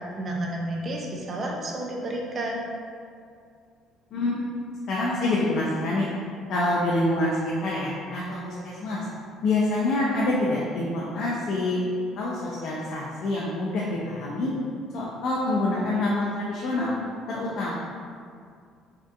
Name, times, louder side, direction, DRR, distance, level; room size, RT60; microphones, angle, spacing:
voice 1, 0.2-2.6, right 1 dB, 35° right, -1 dB, 0.4 m, -31 dB
voice 2, 4.9-6.1 6.5-9.1 9.4-11.8 12.2-14.5 14.9-16.9 17.3-17.7, left 2 dB, 65° left, -5 dB, 0.4 m, -26 dB
2.7 x 2.4 x 2.2 m, 2.2 s
cardioid pair, 110°, 0 cm